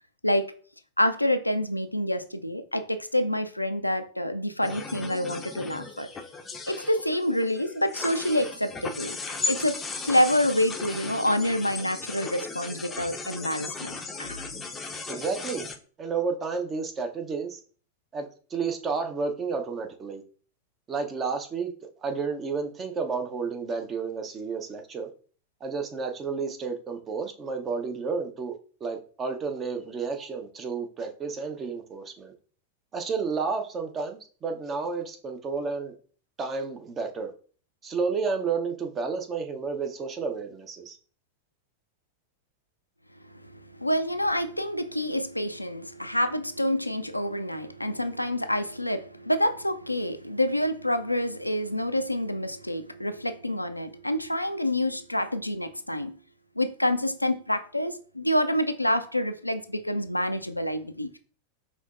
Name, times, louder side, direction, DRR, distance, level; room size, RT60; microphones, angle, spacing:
voice 1, 1.0-6.1 6.7-9.2 9.5-9.8 10.0-14.5 43.3-56.1 56.6-61.1, left 1 dB, 90° left, 0.3 m, -27 dB
sound 1, 4.6-15.7, left 4 dB, 15° left, 0.5 m, -36 dB
voice 2, 15.0-15.6 16.0-17.6 18.1-18.2 18.5-20.2 20.9-21.7 22.0-25.1 25.6-32.3 32.9-35.9 36.4-37.3 37.8-41.0, right 5 dB, 25° right, 0.6 m, -31 dB
5.3 x 2.8 x 2.5 m
figure-of-eight pair, 90°, 0 cm